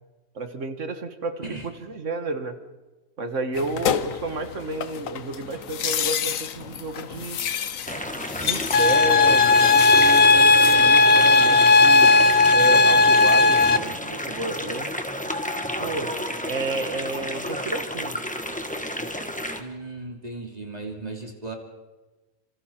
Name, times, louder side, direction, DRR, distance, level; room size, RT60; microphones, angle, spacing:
voice 1, 0.4-2.6 3.2-7.4 8.4-12.2 12.5-14.9 15.8-16.1 16.5-18.2, right 3 dB, 65° right, 8 dB, 1.9 m, -31 dB
sound 1, 3.5-10.8, left 8 dB, 75° left, 1.3 m, -30 dB
sound 2, 7.9-19.6, left 1 dB, 5° left, 1.5 m, -31 dB
sound 3, 8.7-13.8, left 3 dB, 50° left, 1.1 m, -15 dB
voice 2, 19.5-21.5, right 3 dB, 30° right, 2 dB, 2.8 m, -36 dB
27.5 x 27.0 x 4.4 m, 1.2 s
omnidirectional pair, 1.4 m